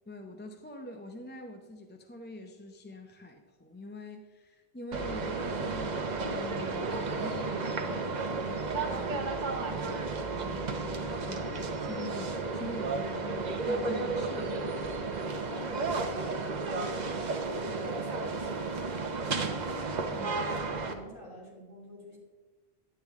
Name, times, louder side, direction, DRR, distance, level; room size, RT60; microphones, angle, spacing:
voice 1, 0.1-9.2 9.7-10.0 10.3-14.8 20.1-20.4, left 1 dB, 15° left, 4 dB, 0.4 m, -45 dB
sound 1, 4.9-20.9, right 3 dB, 45° right, 0.8 m, -33 dB
voice 2, 15.5-19.7 20.3-22.2, left 1 dB, 35° left, -5 dB, 2.8 m, -47 dB
10.5 x 8.9 x 3.5 m, 1.3 s
omnidirectional pair, 1.1 m